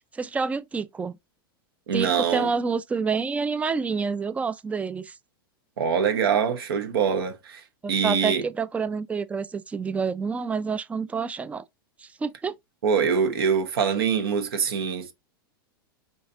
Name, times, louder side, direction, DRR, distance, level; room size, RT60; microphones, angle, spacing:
voice 1, 0.1-1.1 1.9-5.1 8.0-11.6 12.0-12.5, right 5 dB, 10° right, 0.3 m, -28 dB
voice 2, 1.9-2.5 5.8-7.6 7.9-8.4 12.8-15.1, right 6 dB, 75° right, 1.0 m, -24 dB
5.1 x 2.7 x 2.7 m
hypercardioid pair, 110°, 12 cm